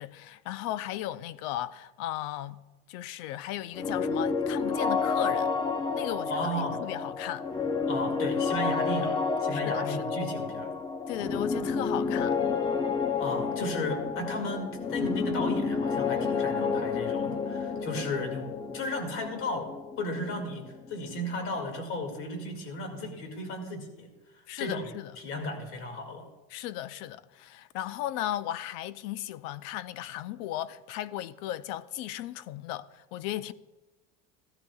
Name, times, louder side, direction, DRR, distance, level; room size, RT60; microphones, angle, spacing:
voice 1, 0.0-2.6 2.9-5.5 5.9-7.5 9.5-10.1 11.1-12.4 24.5-25.1 26.5-33.5, left 13 dB, 60° left, 0.6 m, -36 dB
sound 1, 3.7-21.4, left 5 dB, 15° left, 0.6 m, -30 dB
voice 2, 6.3-6.8 7.9-10.7 13.2-18.5 18.7-19.7 20.0-24.1 24.6-24.9 25.2-26.3, left 1 dB, 45° left, 2.2 m, -34 dB
15.5 x 13.0 x 2.3 m
supercardioid pair, 140°, 29 cm